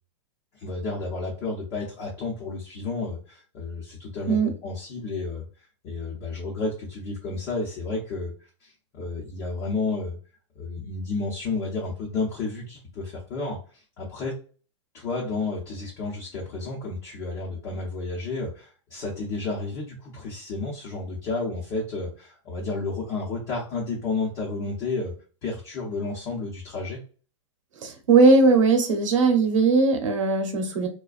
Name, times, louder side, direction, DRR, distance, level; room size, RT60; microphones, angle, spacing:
voice 1, 0.5-5.4 5.8-8.3 8.6-10.2 10.6-13.6 14.0-14.3 14.9-25.1 25.4-27.0, left 3 dB, 35° left, -4 dB, 0.8 m, -31 dB
voice 2, 27.8-30.9, right 4 dB, 85° right, 5 dB, 0.8 m, -19 dB
2.4 x 2.2 x 2.4 m, 0.38 s
hypercardioid pair, 150°, 16 cm